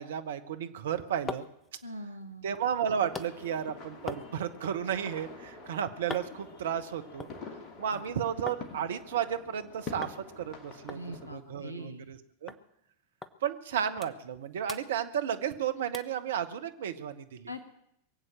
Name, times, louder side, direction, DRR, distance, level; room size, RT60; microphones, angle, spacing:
voice 1, 0.0-1.4 2.4-7.3 7.8-11.0 11.3-12.5 13.4-17.5, right 8 dB, 60° right, 9 dB, 1.1 m, -33 dB
sound 1, 0.8-8.7 9.0-9.6 10.0-10.2 10.5-10.6 10.9-12.2 12.5-12.6 13.2-13.3 13.7-14.4 14.6-15.6 15.9-16.2 16.7-16.8, left 4 dB, 15° left, 0.9 m, -45 dB
voice 2, 1.8-2.5 7.9-8.0 10.9-12.0 17.5-17.6, equal, 90° right, 6 dB, 1.3 m, -42 dB
sound 2, 3.1-11.3, left 4 dB, 30° left, 2.5 m, -47 dB
22.5 x 8.1 x 7.6 m, 0.75 s
figure-of-eight pair, 90°, 0 cm